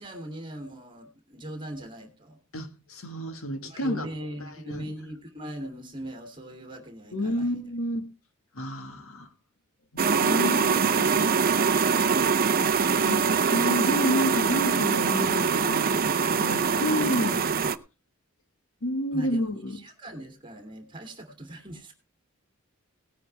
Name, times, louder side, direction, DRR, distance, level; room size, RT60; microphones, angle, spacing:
voice 1, 0.0-2.4 3.6-7.6 19.1-21.9, right 1 dB, 25° right, 2.7 m, -40 dB
voice 2, 2.5-4.1 4.4-4.9 7.1-8.1 8.5-9.3 9.9-11.3 13.0-15.9 16.4-17.4 18.8-19.8, left 1 dB, 70° left, 1.6 m, -30 dB
sound 1, 10.0-17.8, right 5 dB, 40° right, 0.6 m, -23 dB
18.0 x 9.5 x 3.4 m
head